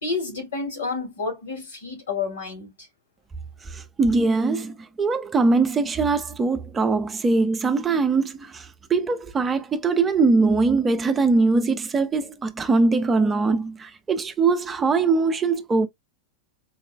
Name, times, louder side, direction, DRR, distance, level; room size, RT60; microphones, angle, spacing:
voice 1, 0.0-2.7, left 4 dB, 65° left, 2.0 m, -29 dB
voice 2, 3.6-15.9, right 3 dB, 20° right, 0.4 m, -22 dB
4.5 x 2.3 x 2.2 m
figure-of-eight pair, 90°, 0 cm